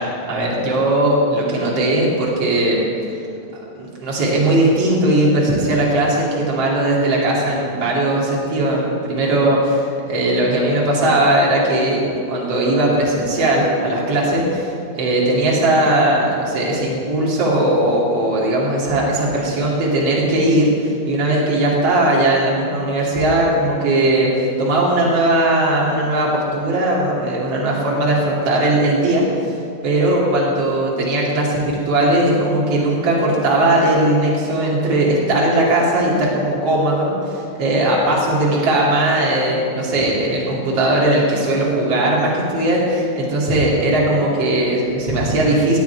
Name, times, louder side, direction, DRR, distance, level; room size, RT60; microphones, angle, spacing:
voice 1, 0.0-3.2 3.7-45.8, right 1 dB, 55° right, -5 dB, 3.6 m, -18 dB
17.5 x 11.5 x 4.7 m, 2.5 s
omnidirectional pair, 3.4 m